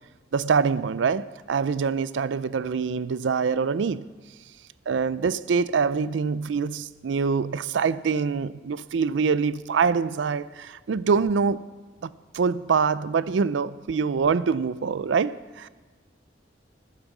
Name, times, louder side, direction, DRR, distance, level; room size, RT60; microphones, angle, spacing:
voice 1, 0.3-4.0 4.9-11.7 12.0-15.7, right 5 dB, 85° right, 0.4 m, -25 dB
14.5 x 10.5 x 6.1 m
head